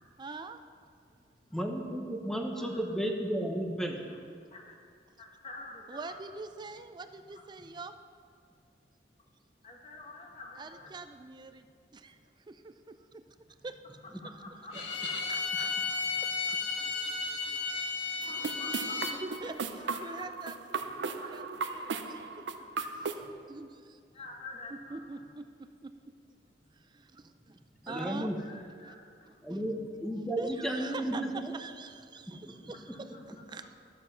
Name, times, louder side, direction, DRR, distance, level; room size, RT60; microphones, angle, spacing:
voice 1, 0.2-0.6 5.9-8.0 10.6-11.7 11.9-12.2 12.5-13.2 13.6-13.8 15.3-16.0 17.5-17.9 19.0-22.6 23.5-24.0 24.7-25.9 26.8-28.3 28.8-29.0 29.3-29.6 30.3-33.7, right 3 dB, 25° right, 9 dB, 0.4 m, -44 dB
voice 2, 1.5-4.0 20.9-21.2 27.8-28.4 29.4-31.5 32.4-32.5, right 1 dB, 5° left, 2 dB, 0.9 m, -33 dB
voice 3, 5.2-6.2 7.3-7.4 9.6-10.9 14.4-15.2 18.3-19.0 19.7-20.2 21.2-21.6 22.6-23.1 24.1-25.2 28.4-29.3 33.1-33.2, left 2 dB, 35° left, 1 dB, 1.4 m, -48 dB
Bowed string instrument, 14.7-19.2, left 4 dB, 85° left, 1.2 m, -33 dB
sound 1, 18.2-23.3, right 4 dB, 75° right, 0.6 m, -37 dB
11.5 x 7.2 x 5.7 m, 2.2 s
head